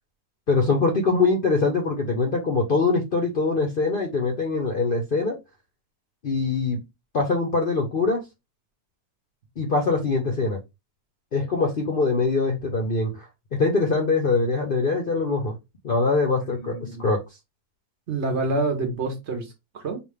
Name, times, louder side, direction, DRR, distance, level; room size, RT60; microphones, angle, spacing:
voice 1, 0.5-5.4 6.2-6.8 7.1-8.2 9.6-10.6 11.3-13.3 13.5-15.6 15.8-17.2, left 3 dB, 50° left, 0.7 m, -23 dB
voice 2, 16.5-17.1 18.1-20.0, right 3 dB, 50° right, 1.1 m, -28 dB
5.1 x 2.4 x 3.2 m
omnidirectional pair, 1.7 m